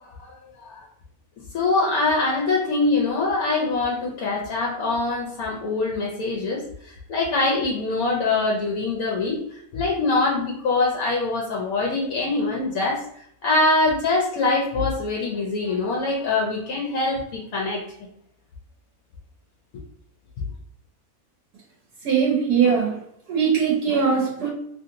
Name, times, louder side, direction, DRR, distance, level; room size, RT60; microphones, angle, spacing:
voice 1, 0.0-0.4 0.6-0.9 1.5-13.0 13.4-17.8, left 3 dB, 70° left, -2 dB, 1.1 m, -24 dB
voice 2, 22.0-23.0 23.3-24.5, right 6 dB, 80° right, -3 dB, 1.3 m, -21 dB
3.1 x 2.8 x 2.5 m, 0.69 s
omnidirectional pair, 1.6 m